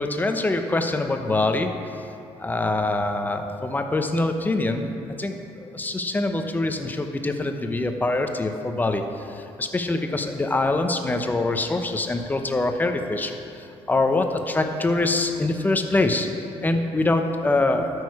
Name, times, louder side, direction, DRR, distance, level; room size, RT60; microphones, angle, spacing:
voice 1, 0.0-1.7 2.4-4.8 5.2-9.0 9.3-16.3 16.6-17.9, left 2 dB, 15° left, 5 dB, 0.8 m, -24 dB
13.0 x 6.5 x 4.8 m, 2.6 s
cardioid pair, 110°, 11 cm